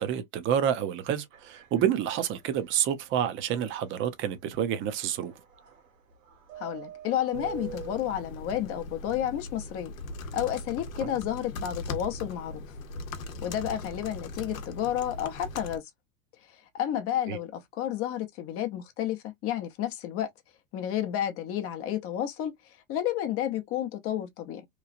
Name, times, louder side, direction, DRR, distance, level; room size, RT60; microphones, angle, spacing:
voice 1, 0.0-5.3 11.0-11.1 17.3-17.4, right 9 dB, 30° right, 0.6 m, -28 dB
sound 1, 1.3-4.0 4.6-8.0, right 10 dB, 75° right, 1.5 m, -46 dB
voice 2, 6.6-9.9 10.3-12.6 13.4-15.8 16.5-20.3 20.7-24.7, left 11 dB, 35° left, 0.6 m, -31 dB
sound 2, 7.3-15.8, left 2 dB, 85° left, 0.8 m, -40 dB
3.0 x 2.3 x 2.4 m
hypercardioid pair, 115°, 40 cm